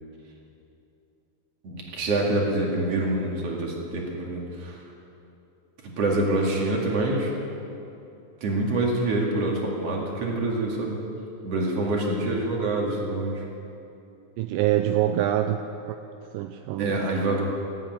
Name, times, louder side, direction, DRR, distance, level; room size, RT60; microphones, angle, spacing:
voice 1, 1.6-4.8 6.0-7.3 8.4-11.0 11.4-13.4 16.8-17.4, right 2 dB, 45° right, -1 dB, 2.9 m, -26 dB
voice 2, 14.4-16.0 16.3-17.0, right 12 dB, 80° right, 7 dB, 2.1 m, -25 dB
16.0 x 9.1 x 9.2 m, 2.8 s
omnidirectional pair, 4.2 m